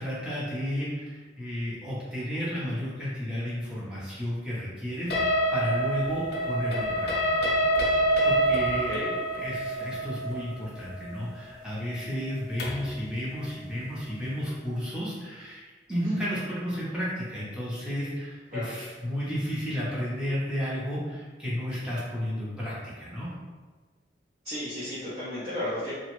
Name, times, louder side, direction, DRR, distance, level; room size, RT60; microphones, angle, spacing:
voice 1, 0.0-7.4 8.2-8.9 9.4-23.3, equal, 5° right, -9 dB, 0.8 m, -32 dB
sound 1, 5.1-12.9, right 1 dB, 60° left, 0.5 m, -27 dB
voice 2, 8.7-9.2 18.5-18.7 24.4-25.9, left 1 dB, 40° right, -11 dB, 0.7 m, -34 dB
2.9 x 2.3 x 3.0 m, 1.4 s
head